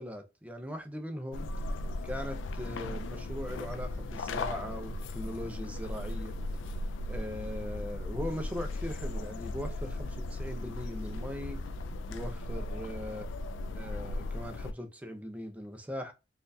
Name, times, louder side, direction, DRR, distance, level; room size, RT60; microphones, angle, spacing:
voice 1, 0.0-1.5 2.0-6.4 7.0-11.6 12.1-13.3 13.7-16.1, equal, 10° right, 0.6 m, -40 dB
sound 1, 1.3-14.7, left 2 dB, 80° left, 0.4 m, -37 dB
4.2 x 2.4 x 2.6 m
head